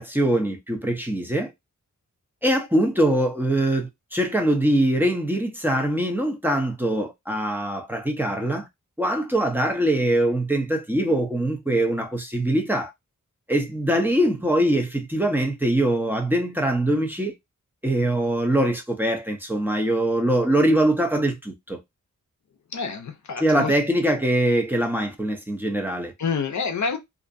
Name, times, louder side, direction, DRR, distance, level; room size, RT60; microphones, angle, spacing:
voice 1, 0.0-1.5 2.4-8.7 9.0-12.9 13.5-17.3 17.8-21.8 23.4-26.1, right 1 dB, 5° right, 0.7 m, -23 dB
voice 2, 22.7-23.7 26.2-27.0, left 5 dB, 60° left, 0.6 m, -27 dB
2.5 x 2.1 x 2.6 m
cardioid pair, 55°, 32 cm